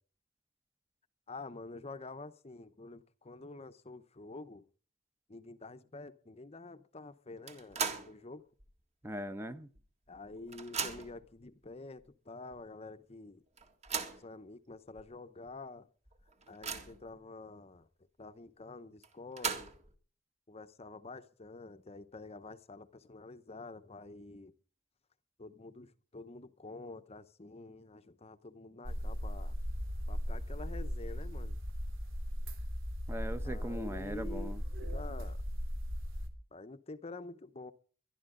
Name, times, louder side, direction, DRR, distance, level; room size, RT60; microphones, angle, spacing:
voice 1, 1.3-4.6 5.3-8.4 10.1-13.4 14.2-15.9 16.5-17.9 18.2-19.7 20.5-24.5 25.4-29.6 30.1-31.6 33.4-35.4 36.5-37.7, left 3 dB, 30° left, 0.8 m, -48 dB
sound 1, 7.5-8.2 8.6-8.7 9.8-9.9 10.1-11.3 12.0-12.1 12.5-12.6 13.6-14.3 15.0-15.1 15.5-15.6 16.1-17.1 19.0-19.9, right 5 dB, 35° right, 2.0 m, -38 dB
voice 2, 9.0-9.7 33.1-34.6, right 1 dB, 15° right, 0.9 m, -40 dB
sound 2, 28.8-36.3, equal, 75° right, 2.8 m, -37 dB
22.5 x 11.5 x 3.8 m
head